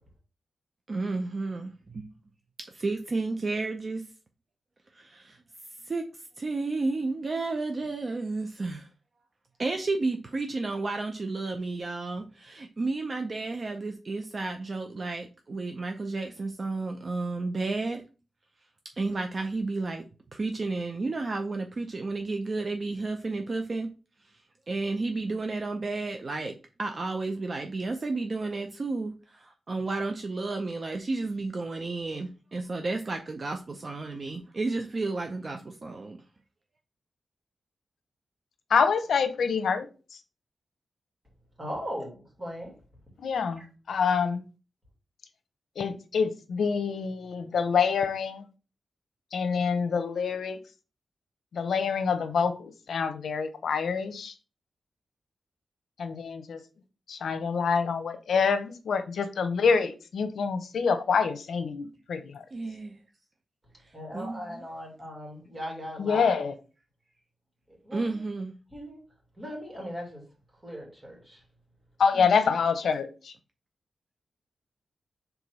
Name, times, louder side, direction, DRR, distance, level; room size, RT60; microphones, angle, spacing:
voice 1, 0.9-2.1 2.7-4.0 4.9-5.4 5.8-6.0 6.4-8.9 9.6-18.0 19.0-20.0 20.3-23.9 24.7-26.5 26.8-36.2 62.5-63.0 64.1-64.6 67.9-68.5 72.2-72.6, right 3 dB, 35° right, 0.6 m, -32 dB
voice 2, 38.7-39.9 43.2-43.6 43.9-44.4 45.8-48.4 49.3-50.6 51.5-54.3 56.0-56.6 57.1-62.4 66.0-66.5 72.0-73.1, left 6 dB, 85° left, 0.8 m, -26 dB
voice 3, 41.6-42.8 43.6-43.7 63.9-66.5 67.8-68.2 68.7-69.0 69.4-70.2 70.6-71.4, equal, 20° right, 2.9 m, -38 dB
4.7 x 3.9 x 5.3 m
wide cardioid pair, 155°, 0 cm